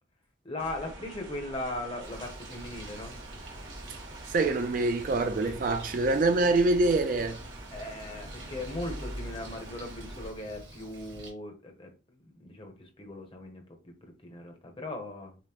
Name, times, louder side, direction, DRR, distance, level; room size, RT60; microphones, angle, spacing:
voice 1, 0.4-3.2 7.7-13.9 14.2-15.4, left 1 dB, 25° left, 0.7 m, -39 dB
sound 1, 0.6-10.3, right 1 dB, 85° right, 1.2 m, -44 dB
Bird, 2.0-11.3, right 1 dB, 65° right, 1.4 m, -47 dB
voice 2, 4.3-7.4, right 2 dB, 45° right, 0.3 m, -25 dB
5.1 x 2.0 x 2.9 m
head